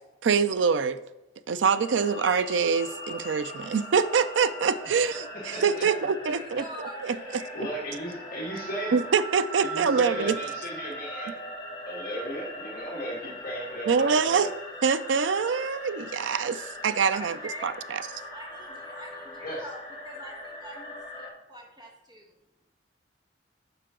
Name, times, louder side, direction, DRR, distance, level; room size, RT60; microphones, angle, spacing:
voice 1, 0.2-1.0 1.5-6.7 7.0-7.4 8.9-10.4 13.9-14.5 14.8-17.4 17.6-18.2, right 6 dB, 85° right, 14 dB, 0.4 m, -25 dB
sound 1, 1.7-21.3, equal, 25° left, 2.5 m, -40 dB
voice 2, 5.5-5.9 7.3-9.0 9.6-11.3 11.9-14.5 19.4-19.7, right 1 dB, 50° left, -3 dB, 1.7 m, -35 dB
voice 3, 6.3-7.5 17.1-17.2 17.4-17.8 18.3-19.8 20.0-22.3, right 1 dB, 20° right, -1 dB, 1.6 m, -44 dB
11.5 x 4.7 x 3.8 m, 0.93 s
head